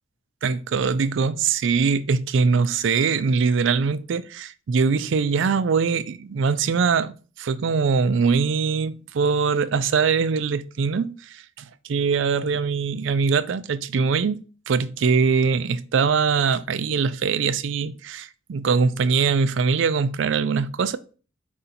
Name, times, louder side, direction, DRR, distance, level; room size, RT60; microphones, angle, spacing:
voice 1, 0.4-21.0, right 5 dB, 70° right, 0.4 m, -22 dB
4.8 x 2.7 x 4.2 m
head